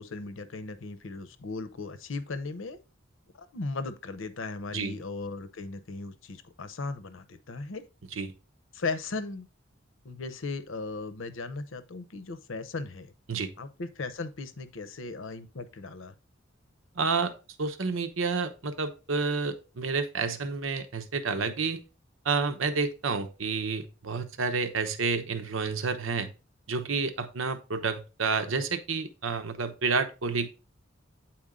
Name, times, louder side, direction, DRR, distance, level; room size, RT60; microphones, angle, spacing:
voice 1, 0.0-2.8 3.3-7.8 8.7-9.5 10.0-13.1 13.6-16.1, left 3 dB, 75° left, 0.7 m, -37 dB
voice 2, 16.9-17.3 17.6-21.8 22.2-26.3 26.7-30.5, right 4 dB, 90° right, 0.9 m, -29 dB
8.7 x 4.4 x 3.7 m
head